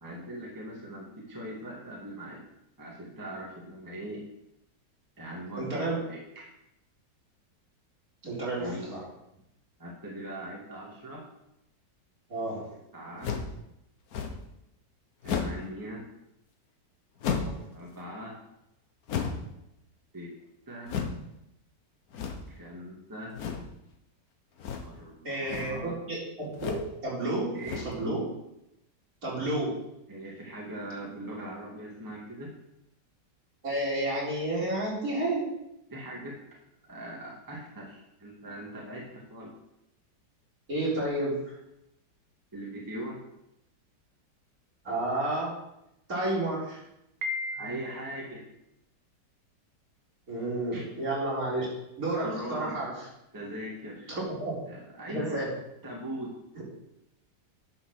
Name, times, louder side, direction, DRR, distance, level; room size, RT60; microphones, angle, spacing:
voice 1, 0.0-2.4 2.8-4.2 5.2-6.5 8.6-9.0 9.8-11.3 12.7-13.3 15.2-16.0 17.7-18.4 20.1-20.3 20.7-20.9 22.5-23.3 24.8-26.0 27.5-27.8 30.1-32.5 35.9-36.4 36.8-39.5 42.5-43.2 47.5-48.5 50.7-50.8 52.2-52.8 53.3-54.2 54.7-55.4 55.8-56.3, right 1 dB, 10° right, -3 dB, 1.8 m, -40 dB
voice 2, 5.6-5.9 8.2-9.1 12.3-12.7 17.4-17.6 25.2-26.7 27.0-27.6 27.8-28.2 29.2-29.8 33.6-35.5 40.7-41.6 44.8-45.6 46.1-46.8 50.3-51.7 52.0-53.0 54.1-54.5 55.1-55.5, right 1 dB, 50° right, -7 dB, 4.5 m, -31 dB
sound 1, 13.2-13.6 14.1-14.5 15.2-15.7 17.2-17.7 19.1-19.5 20.8-21.2 22.1-22.6 23.3-23.7 24.6-25.0 25.4-25.8 26.5-26.9 27.6-28.0, left 6 dB, 60° left, 1.4 m, -33 dB
Piano, 47.2-48.2, left 2 dB, 70° right, 1.8 m, -35 dB
10.5 x 5.7 x 6.5 m, 0.85 s
omnidirectional pair, 1.9 m